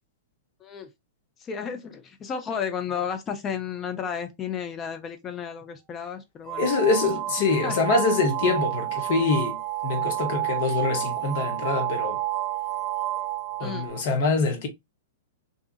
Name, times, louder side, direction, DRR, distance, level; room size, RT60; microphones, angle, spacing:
voice 1, 1.4-6.6 7.6-8.0 13.6-13.9, left 7 dB, 25° left, 0.5 m, -33 dB
sound 1, 6.5-14.0, right 15 dB, 30° right, 0.3 m, -30 dB
voice 2, 6.6-12.2 13.6-14.7, left 4 dB, 50° left, 0.8 m, -25 dB
2.7 x 2.4 x 2.3 m
figure-of-eight pair, 105°, 0 cm